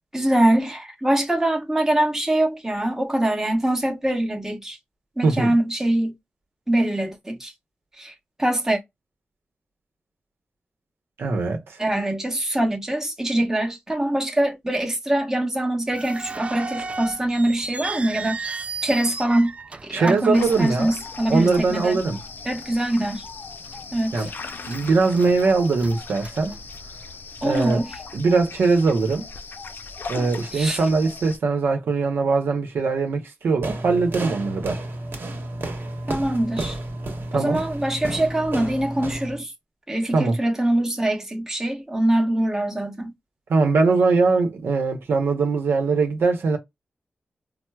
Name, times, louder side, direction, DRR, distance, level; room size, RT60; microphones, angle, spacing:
voice 1, 0.1-4.8 5.2-6.1 6.7-7.5 8.0-8.1 8.4-8.8 11.8-18.4 18.8-19.5 19.8-22.0 22.5-23.2 23.9-24.3 27.4-28.0 30.5-30.8 36.1-36.8 37.3-39.5 39.9-43.1, right 1 dB, 10° right, 0.9 m, -23 dB
voice 2, 5.2-5.5 11.2-11.8 19.9-20.9 21.3-22.2 24.1-24.3 24.7-26.6 27.4-27.8 28.1-29.3 30.1-34.8 37.3-37.6 40.1-40.3 43.5-46.6, right 4 dB, 90° right, 0.8 m, -21 dB
sound 1, 15.9-21.2 21.5-21.6 22.3-22.6 23.0-23.1 23.7-24.3 24.7-27.1, right 4 dB, 35° right, 0.3 m, -35 dB
sound 2, 20.3-31.4, left 4 dB, 65° left, 0.5 m, -38 dB
sound 3, 33.6-39.4, right 1 dB, 65° right, 1.1 m, -32 dB
4.3 x 2.0 x 2.3 m
wide cardioid pair, 80°, 4 cm